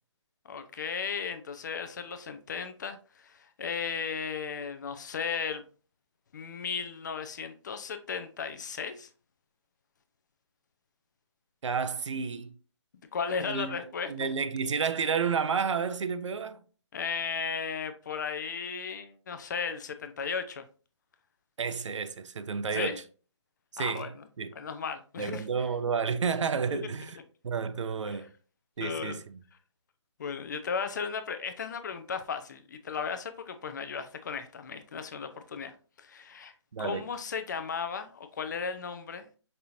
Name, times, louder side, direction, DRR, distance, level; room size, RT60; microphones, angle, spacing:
voice 1, 0.5-5.6 6.3-9.1 13.1-14.1 16.9-20.6 22.7-23.0 23.8-24.2 24.5-25.4 26.7-26.9 28.1-28.2 28.8-29.2 30.2-36.5 36.8-39.3, left 6 dB, 40° left, 0.4 m, -35 dB
voice 2, 11.6-12.5 13.5-13.8 14.1-16.6 21.6-23.0 23.7-24.1 24.4-24.5 25.2-27.2 27.4-28.3 28.8-29.4 36.7-37.0, right 6 dB, 75° right, 0.5 m, -31 dB
5.3 x 2.8 x 2.5 m
figure-of-eight pair, 155°, 16 cm